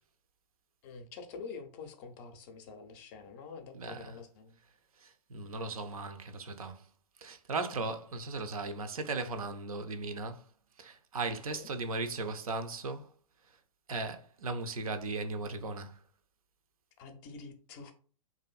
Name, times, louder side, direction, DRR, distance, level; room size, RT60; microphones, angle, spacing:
voice 1, 0.8-4.6 11.3-11.7 17.0-17.9, left 5 dB, 35° left, 0.5 m, -47 dB
voice 2, 3.7-4.2 5.0-6.9 7.2-10.5 10.8-13.1 13.5-13.6 13.9-16.0, right 3 dB, 75° right, 0.4 m, -37 dB
2.6 x 2.4 x 2.3 m
figure-of-eight pair, 110°, 18 cm